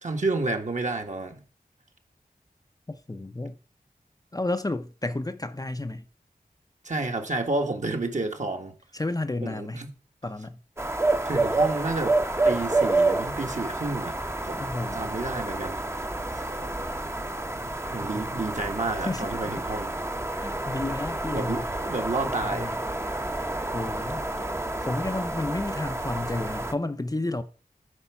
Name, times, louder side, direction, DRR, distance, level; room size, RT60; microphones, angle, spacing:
voice 1, 0.0-1.4 6.8-8.7 9.4-9.9 11.2-12.2 12.4-14.2 14.5-15.8 16.3-16.5 17.9-19.9 21.3-22.7 24.8-24.9, right 2 dB, 50° right, 1.4 m, -30 dB
voice 2, 2.9-3.5 4.3-6.0 8.9-9.9 10.2-10.6 14.6-15.2 18.0-18.4 19.0-19.6 20.4-21.7 22.4-22.8 23.7-24.3 24.8-27.4, left 2 dB, 25° left, 0.6 m, -32 dB
sound 1, 10.8-26.7, right 2 dB, 15° right, 0.8 m, -29 dB
9.8 x 4.6 x 5.8 m
wide cardioid pair, 70°, 16 cm